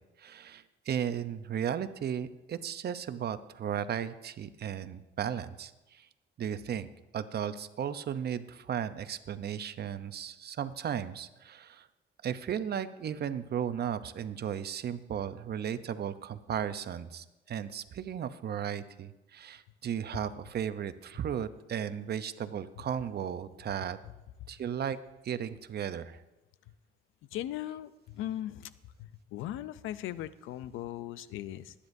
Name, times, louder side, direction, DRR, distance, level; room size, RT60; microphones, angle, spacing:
voice 1, 0.2-5.7 6.4-6.9 7.1-11.9 12.2-24.0 24.5-25.0 25.2-26.2, right 9 dB, 55° right, 12 dB, 0.7 m, -35 dB
voice 2, 27.3-28.7 29.0-31.7, left 13 dB, 90° left, 16 dB, 0.5 m, -38 dB
20.0 x 10.0 x 2.7 m, 1.0 s
cardioid pair, 90°, 20 cm